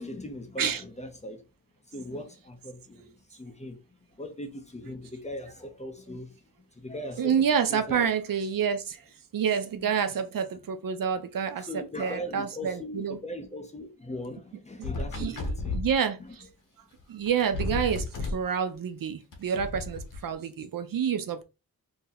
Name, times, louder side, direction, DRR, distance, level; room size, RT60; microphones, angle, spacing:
voice 1, 0.0-1.4 1.8-6.4 6.7-8.1 9.7-9.9 11.6-15.8, left 1 dB, 20° left, 0.6 m, -39 dB
voice 2, 7.2-9.0 9.3-11.7 12.0-13.2 15.2-16.2 17.1-18.0 18.3-21.4, right 7 dB, 65° right, 0.5 m, -28 dB
sound 1, 14.8-15.9 17.0-17.1 17.3-18.4 19.3-20.2, left 2 dB, 55° left, 0.9 m, -32 dB
2.8 x 2.7 x 3.9 m
wide cardioid pair, 180°, 37 cm